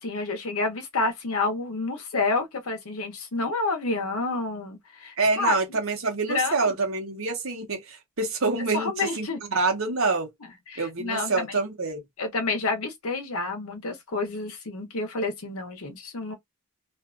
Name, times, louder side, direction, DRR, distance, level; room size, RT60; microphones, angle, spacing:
voice 1, 0.0-5.5 6.3-6.7 8.7-9.4 10.7-11.6 12.2-16.4, left 3 dB, 70° left, 0.9 m, -29 dB
voice 2, 5.2-10.3 10.8-12.0, right 3 dB, 60° right, 1.0 m, -26 dB
2.6 x 2.4 x 2.4 m
head